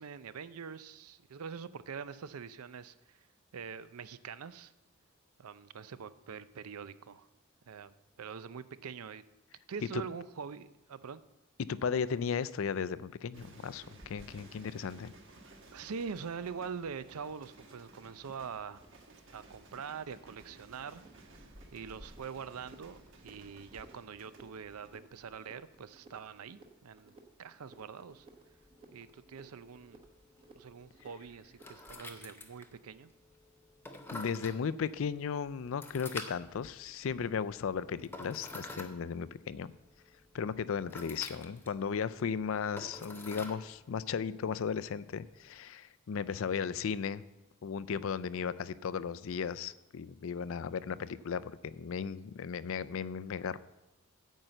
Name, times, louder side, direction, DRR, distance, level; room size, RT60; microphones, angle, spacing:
voice 1, 0.0-3.3 3.5-4.7 5.4-7.3 7.7-9.2 9.7-11.2 15.7-18.8 19.3-28.3 28.9-30.0 30.6-33.1, right 6 dB, 90° right, 15 dB, 0.5 m, -44 dB
voice 2, 11.6-15.1 34.1-39.7 40.3-47.2 47.6-53.6, left 6 dB, 65° left, 17 dB, 0.4 m, -35 dB
sound 1, 13.3-30.6 30.8-31.3, right 2 dB, 55° right, 1.3 m, -58 dB
sound 2, 14.0-32.0, right 1 dB, 25° right, 1.1 m, -60 dB
sound 3, 28.1-45.6, left 2 dB, 10° left, 0.7 m, -50 dB
9.1 x 5.6 x 7.7 m, 0.98 s
head